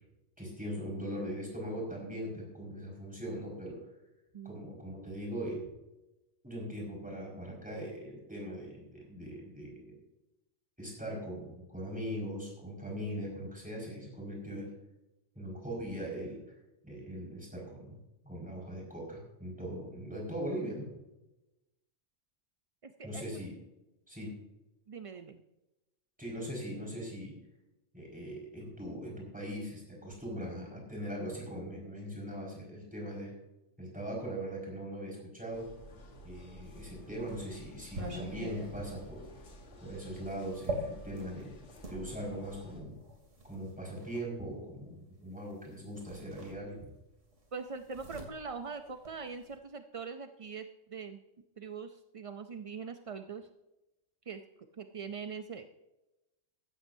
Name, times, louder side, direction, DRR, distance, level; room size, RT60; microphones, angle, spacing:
voice 1, 0.4-3.8 4.4-5.7 6.4-10.0 10.8-14.7 15.3-16.4 16.8-18.0 18.2-20.9 23.0-23.5 24.1-24.4 26.2-27.4 27.9-33.3 33.8-35.7 36.2-39.3 39.8-41.5 41.9-43.0 43.5-46.9, equal, 5° right, -3 dB, 5.2 m, -40 dB
voice 2, 22.8-23.2 24.9-25.4 47.5-51.2 51.6-53.5 54.3-54.4 54.8-55.7, right 5 dB, 50° right, 8 dB, 0.4 m, -42 dB
sound 1, 35.5-42.8, left 1 dB, 65° left, 1.7 m, -52 dB
sound 2, 36.7-42.0 42.9-44.3 45.5-45.6 45.9-47.1 47.3-49.6, right 2 dB, 75° right, 2.7 m, -43 dB
15.0 x 13.0 x 2.7 m, 0.97 s
omnidirectional pair, 1.3 m